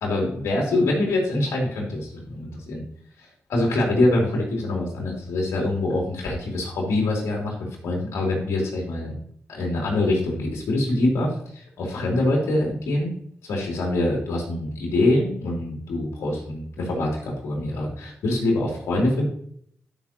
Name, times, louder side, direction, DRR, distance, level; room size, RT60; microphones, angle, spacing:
voice 1, 0.0-2.8 3.5-9.1 9.5-13.1 13.5-19.3, left 2 dB, 90° left, -1 dB, 3.0 m, -24 dB
13.0 x 5.9 x 2.9 m, 0.64 s
cardioid pair, 60°, 5 cm